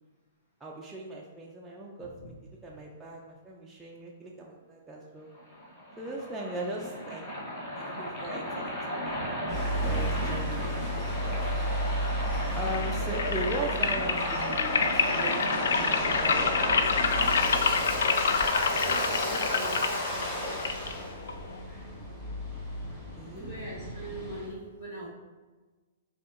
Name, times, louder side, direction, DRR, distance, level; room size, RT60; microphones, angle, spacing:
voice 1, 0.6-5.3 6.0-7.2 7.7-11.4 12.5-16.9 21.2-21.4 23.2-23.5, right 1 dB, 10° right, -4 dB, 0.3 m, -39 dB
Waves surf, 5.3-21.1, left 1 dB, 30° left, 0.8 m, -33 dB
voice 2, 9.0-9.6 18.7-19.8 22.8-22.9 23.2-25.1, right 1 dB, 65° left, -9 dB, 1.2 m, -42 dB
sound 1, 9.5-24.5, right 1 dB, 10° left, 1.3 m, -35 dB
sound 2, 12.6-21.6, left 5 dB, 80° left, 0.3 m, -28 dB
5.0 x 2.7 x 2.5 m, 1.3 s
hypercardioid pair, 160°, 0 cm